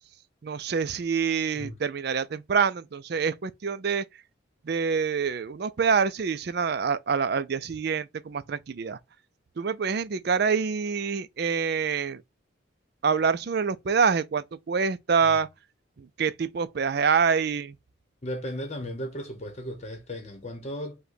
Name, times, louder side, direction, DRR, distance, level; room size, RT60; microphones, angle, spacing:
voice 1, 0.4-4.0 4.6-9.0 9.6-12.2 13.0-15.5 16.0-17.8, right 6 dB, 50° right, 0.4 m, -26 dB
voice 2, 18.2-21.0, equal, 35° left, 0.9 m, -35 dB
5.4 x 2.2 x 3.8 m
head